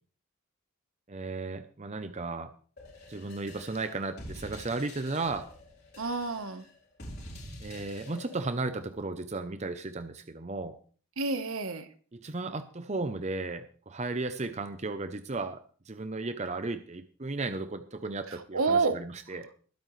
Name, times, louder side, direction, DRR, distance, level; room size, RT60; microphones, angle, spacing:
voice 1, 1.1-2.5 3.1-5.5 7.6-10.8 12.1-19.5, right 3 dB, 30° right, 10 dB, 0.6 m, -35 dB
sound 1, 2.8-8.4, left 1 dB, 45° left, 4.2 m, -47 dB
voice 2, 6.0-6.6 11.2-11.9 18.3-19.0, right 4 dB, 70° right, 10 dB, 1.2 m, -29 dB
21.5 x 8.7 x 3.2 m, 0.42 s
head